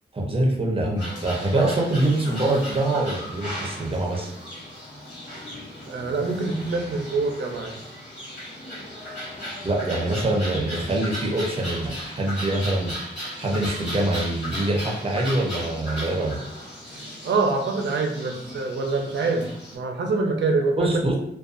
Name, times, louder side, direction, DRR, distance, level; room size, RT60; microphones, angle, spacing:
voice 1, 0.1-4.3 9.6-12.9 13.4-16.4 20.8-21.1, right 1 dB, 30° right, -1 dB, 0.6 m, -24 dB
sound 1, 1.0-19.8, equal, 75° left, 1.1 m, -36 dB
voice 2, 5.9-7.8 17.2-19.4 19.7-21.0, right 3 dB, 90° right, 2 dB, 0.5 m, -25 dB
2.5 x 2.3 x 2.4 m, 0.74 s
wide cardioid pair, 130°, 18 cm